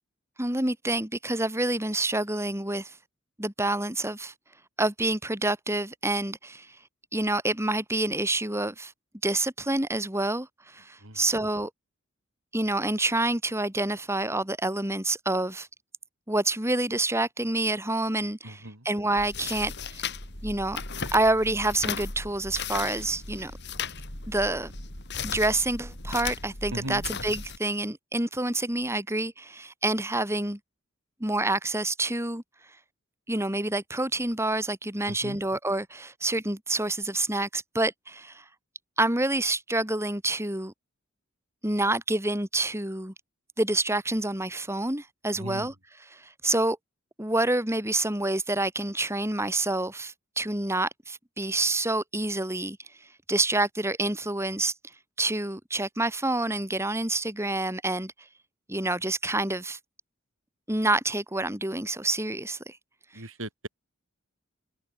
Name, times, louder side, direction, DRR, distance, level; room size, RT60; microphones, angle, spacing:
voice 1, 0.4-2.9 3.4-4.3 4.8-6.8 7.1-8.9 9.2-11.7 12.5-15.7 16.3-20.0 20.4-20.8 21.1-23.5 24.3-24.7 25.2-30.6 31.2-32.4 33.3-38.4 39.0-40.7 41.6-43.1 43.6-46.8 47.2-52.8 53.3-54.7 55.2-58.1 58.7-59.8 60.7-62.8, right 2 dB, 15° right, 4.3 m, -28 dB
voice 2, 18.4-18.9 26.7-27.1 35.1-35.4 45.4-45.7 63.1-63.7, right 1 dB, 70° right, 7.8 m, -38 dB
sound 1, 19.2-27.6, left 5 dB, 55° left, 7.2 m, -36 dB
head